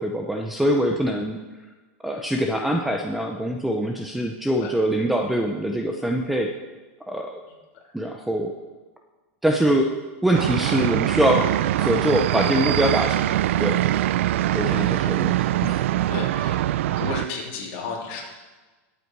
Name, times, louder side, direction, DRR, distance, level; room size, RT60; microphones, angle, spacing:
voice 1, 0.0-1.4 2.0-6.5 7.1-7.4 7.9-8.5 9.4-9.9 10.2-13.2 13.6-13.8 14.5-15.8, equal, ahead, 2 dB, 0.5 m, -23 dB
sound 1, 10.3-17.3, right 13 dB, 70° right, 0.4 m, -23 dB
voice 2, 14.5-14.8 16.1-18.2, left 4 dB, 40° left, -2 dB, 3.3 m, -34 dB
20.5 x 8.1 x 4.7 m, 1.3 s
supercardioid pair, 175°, 7 cm